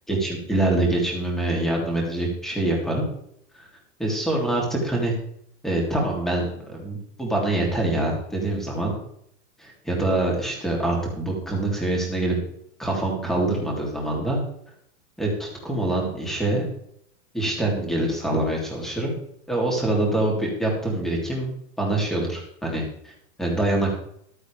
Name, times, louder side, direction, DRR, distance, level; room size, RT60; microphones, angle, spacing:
voice 1, 0.1-3.1 3.5-3.7 4.0-5.2 5.6-8.9 9.6-12.4 12.8-14.4 15.2-16.7 17.3-19.1 19.5-21.5 21.8-23.1 23.4-24.0, right 2 dB, ahead, -2 dB, 3.1 m, -25 dB
14.5 x 12.5 x 3.5 m, 0.70 s
supercardioid pair, 160°, 38 cm